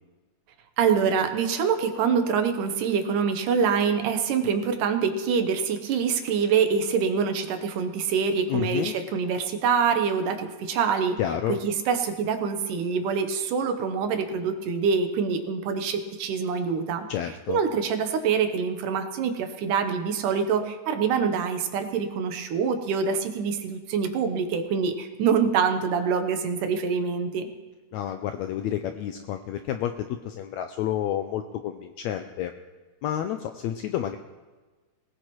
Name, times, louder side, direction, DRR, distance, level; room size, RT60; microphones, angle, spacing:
voice 1, 0.8-11.2 11.6-17.1 17.5-27.5, right 6 dB, 80° right, 7 dB, 2.6 m, -25 dB
voice 2, 8.5-8.9 11.2-11.6 17.1-17.6 27.9-32.5 33.0-34.2, left 10 dB, 80° left, 7 dB, 1.6 m, -30 dB
19.5 x 17.0 x 3.1 m, 1.3 s
omnidirectional pair, 3.7 m